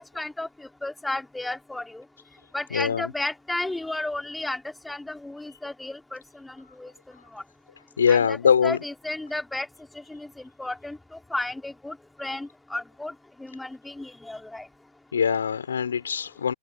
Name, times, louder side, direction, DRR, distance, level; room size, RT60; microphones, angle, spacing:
voice 1, 0.0-2.0 2.5-6.9 7.3-7.4 8.1-8.4 8.6-9.7 9.9-10.3 10.6-11.0 11.3-13.1 13.4-14.7, left 2 dB, 5° left, 4.6 m, -33 dB
voice 2, 2.7-3.1 8.0-8.8 15.1-16.5, left 7 dB, 70° left, 4.4 m, -22 dB
figure-of-eight pair, 90°, 0 cm